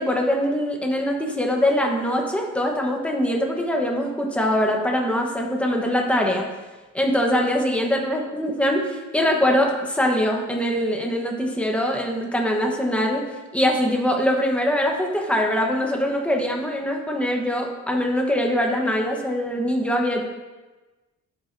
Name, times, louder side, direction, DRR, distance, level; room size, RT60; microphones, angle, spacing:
voice 1, 0.0-6.5 6.9-13.3 13.5-20.2, equal, 5° left, 1 dB, 1.1 m, -23 dB
12.5 x 8.2 x 2.7 m, 1.2 s
wide cardioid pair, 160°, 31 cm